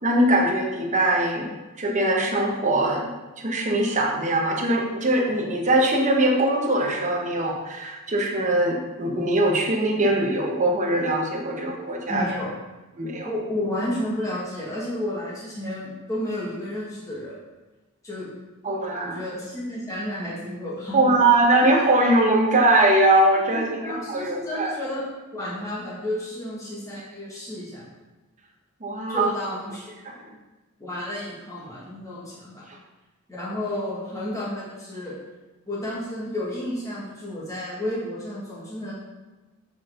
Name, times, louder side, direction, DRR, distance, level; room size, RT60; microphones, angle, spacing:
voice 1, 0.0-1.5 1.8-3.1 3.4-12.3 12.9-13.3 18.6-19.2 20.9-24.7 28.8-29.3, right 1 dB, 35° right, 0 dB, 1.0 m, -21 dB
voice 2, 12.1-12.5 13.2-17.3 18.0-18.3 19.0-21.0 21.6-21.7 23.5-25.0 25.3-27.8 29.1-29.8 30.8-32.6 33.3-35.1 35.7-38.9, left 1 dB, 15° left, -9 dB, 1.8 m, -31 dB
7.2 x 4.4 x 3.7 m, 1.2 s
head